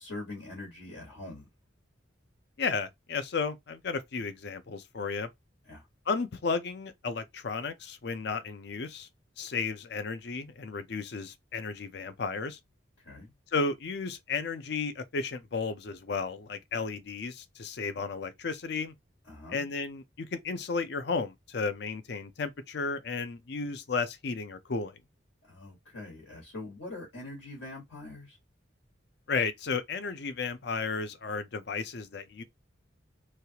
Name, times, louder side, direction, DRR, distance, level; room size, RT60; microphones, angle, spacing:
voice 1, 0.0-1.5 5.6-5.9 13.0-13.3 19.2-19.7 25.4-28.4, left 2 dB, 80° left, 1.5 m, -43 dB
voice 2, 2.6-5.3 6.1-9.1 9.4-12.6 13.5-18.9 19.5-25.0 29.3-32.4, left 4 dB, 55° left, 0.5 m, -33 dB
3.1 x 2.4 x 2.8 m
head